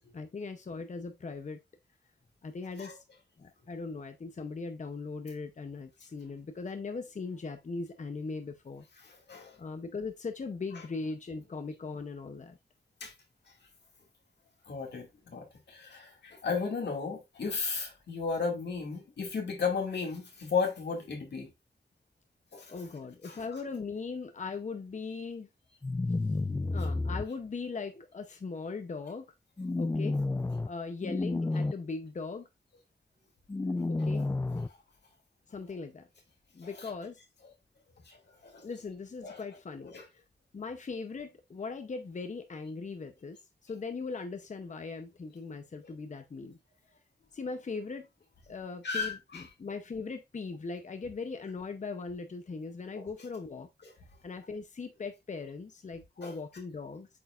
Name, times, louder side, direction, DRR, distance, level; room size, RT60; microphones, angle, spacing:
voice 1, 0.1-1.6 2.4-3.0 3.4-8.8 9.6-12.6 22.7-25.5 26.7-29.3 29.8-30.2 30.6-32.5 33.9-34.3 35.5-36.1 36.5-37.2 38.6-40.2 40.5-46.6 47.3-48.1 48.5-53.7 54.2-57.1, left 4 dB, 45° left, 0.7 m, -39 dB
voice 2, 9.0-9.6 13.0-13.1 14.7-21.5 22.5-22.7 23.2-23.4 34.7-34.8 36.6-36.7 38.1-38.2 38.4-38.7 39.2-39.4 39.9-40.0 48.8-49.4 52.9-53.1 56.2-56.3, left 5 dB, 90° left, 2.3 m, -34 dB
sound 1, 25.8-27.2 29.6-30.7 31.0-31.7 33.5-34.7, left 2 dB, 15° left, 0.4 m, -30 dB
8.4 x 4.5 x 2.5 m
wide cardioid pair, 90°, 17 cm